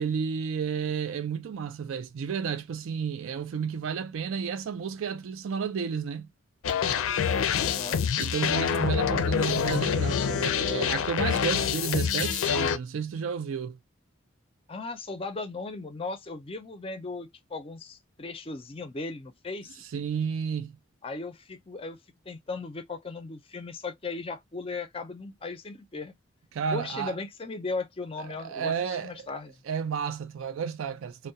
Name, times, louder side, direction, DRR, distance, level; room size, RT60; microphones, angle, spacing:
voice 1, 0.0-6.3 8.2-13.8 19.9-20.7 26.5-27.2 28.2-29.3 29.7-31.3, right 6 dB, 85° right, 0.4 m, -32 dB
sound 1, 6.6-12.8, left 7 dB, 85° left, 0.4 m, -26 dB
voice 2, 7.6-8.1 14.7-19.8 21.0-22.0 22.3-26.1 26.7-29.6, left 3 dB, 30° left, 0.4 m, -37 dB
2.2 x 2.1 x 2.7 m
head